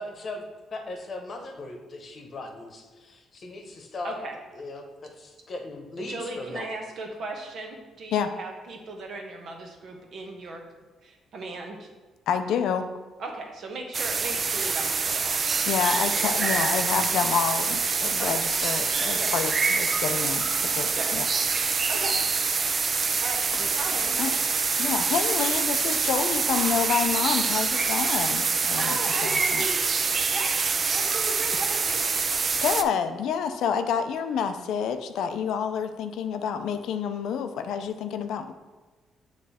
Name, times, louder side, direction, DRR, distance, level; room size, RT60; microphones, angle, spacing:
voice 1, 0.0-4.2 4.5-6.7, left 2 dB, 45° left, 4 dB, 0.9 m, -38 dB
voice 2, 4.0-4.4 6.0-10.6 11.0-11.9 13.2-15.3 16.1-16.7 18.2-18.4 19.2-19.3 20.9-21.1 21.9-22.2 23.2-24.2 28.8-29.8 30.3-30.5 30.9-32.0, right 2 dB, 65° right, 2 dB, 1.1 m, -37 dB
voice 3, 12.3-12.9 15.7-21.3 24.2-24.3 24.8-29.0 29.2-29.7 32.6-38.5, left 7 dB, 80° left, 8 dB, 0.4 m, -28 dB
sound 1, 13.9-32.8, right 5 dB, 40° right, 0.4 m, -25 dB
7.3 x 3.2 x 4.2 m, 1.3 s
cardioid pair, 90°, 0 cm